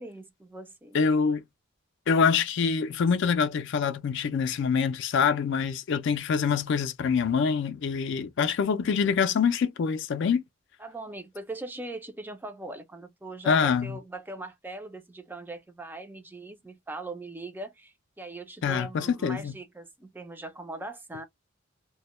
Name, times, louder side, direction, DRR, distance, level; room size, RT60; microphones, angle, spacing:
voice 1, 0.0-1.0 10.8-21.2, right 2 dB, 10° right, 0.4 m, -40 dB
voice 2, 0.9-1.4 2.1-10.4 13.4-14.0 18.6-19.5, left 6 dB, 60° left, 0.3 m, -25 dB
2.1 x 2.1 x 2.9 m
head